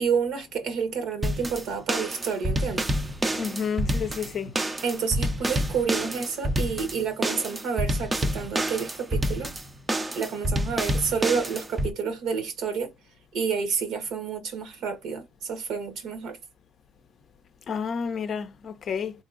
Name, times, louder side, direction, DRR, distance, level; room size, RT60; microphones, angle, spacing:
voice 1, 0.0-2.9 4.1-4.3 4.8-9.5 10.2-12.9 13.3-16.4, right 6 dB, 65° right, 1.1 m, -29 dB
sound 1, 1.2-11.9, right 1 dB, 20° right, 0.6 m, -28 dB
voice 2, 3.4-4.5 17.7-19.1, left 6 dB, 45° left, 0.5 m, -30 dB
3.6 x 2.8 x 2.5 m
supercardioid pair, 80°, 0 cm